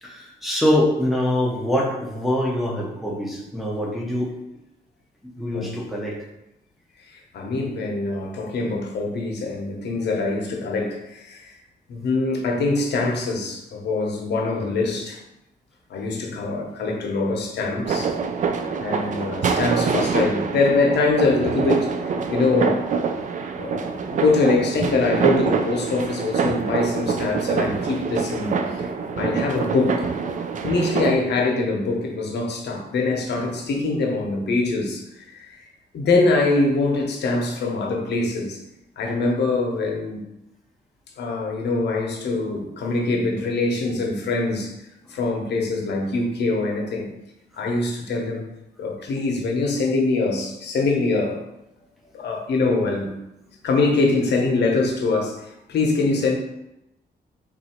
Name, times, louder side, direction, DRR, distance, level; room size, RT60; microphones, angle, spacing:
voice 1, 0.0-4.4 5.2-6.2, left 1 dB, ahead, -3 dB, 0.9 m, -24 dB
voice 2, 7.1-11.5 11.9-15.2 15.9-18.2 18.8-22.9 23.6-28.9 29.1-30.1 30.6-35.7 35.9-38.6 39.0-40.2 41.2-44.7 45.1-47.1 47.6-48.4 48.8-51.4 52.1-53.1 53.6-56.3, left 3 dB, 75° left, 1 dB, 0.9 m, -23 dB
sound 1, 17.8-31.1, right 5 dB, 45° right, 0.4 m, -25 dB
3.8 x 2.7 x 4.3 m, 0.89 s
wide cardioid pair, 150°, 18 cm